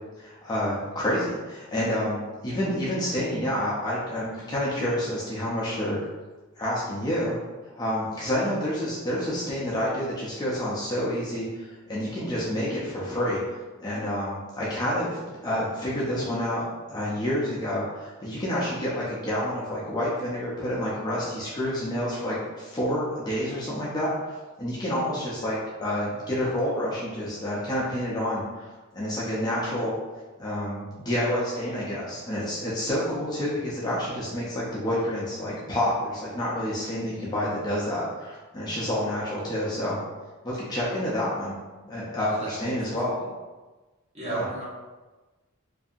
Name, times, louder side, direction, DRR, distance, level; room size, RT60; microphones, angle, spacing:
voice 1, 0.2-6.0 6.6-7.4 7.8-13.4 13.8-16.6 16.9-29.9 30.4-40.0 40.4-41.5 41.8-43.1 44.2-44.5, left 1 dB, 20° left, -7 dB, 0.4 m, -29 dB
voice 2, 42.2-43.3 44.1-44.6, right 2 dB, 30° right, -8 dB, 0.9 m, -36 dB
2.6 x 2.6 x 2.4 m, 1.2 s
head